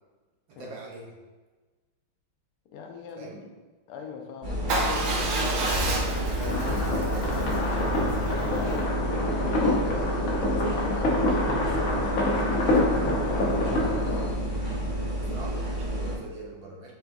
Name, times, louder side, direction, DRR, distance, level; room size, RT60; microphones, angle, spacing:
voice 1, 0.5-1.2 3.2-3.4 15.2-16.9, right 3 dB, 70° right, -2 dB, 1.5 m, -42 dB
voice 2, 2.7-3.5 3.9-6.0 6.4-14.5, left 4 dB, 90° left, 2 dB, 1.6 m, -41 dB
sound 1, 4.4-16.2, equal, 35° right, 0.7 m, -30 dB
Motorcycle / Engine starting / Idling, 4.7-8.8, right 2 dB, 85° right, 1.7 m, -30 dB
sound 2, 6.5-14.2, left 1 dB, 55° left, 0.9 m, -27 dB
5.5 x 3.4 x 2.6 m, 1.3 s
omnidirectional pair, 2.4 m